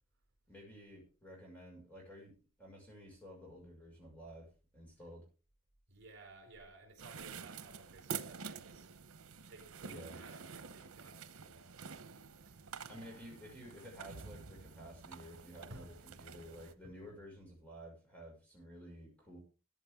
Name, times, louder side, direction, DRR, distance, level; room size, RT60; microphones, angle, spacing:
voice 1, 0.5-5.3 9.8-10.2 12.9-19.4, equal, 5° left, 5.7 m, -52 dB
voice 2, 5.9-8.9 9.5-12.1 12.4-12.9 15.7-15.9 16.8-17.1, right 2 dB, 60° right, 4.9 m, -57 dB
sound 1, 7.0-16.7, right 6 dB, 85° right, 0.9 m, -48 dB
14.5 x 10.5 x 3.7 m
head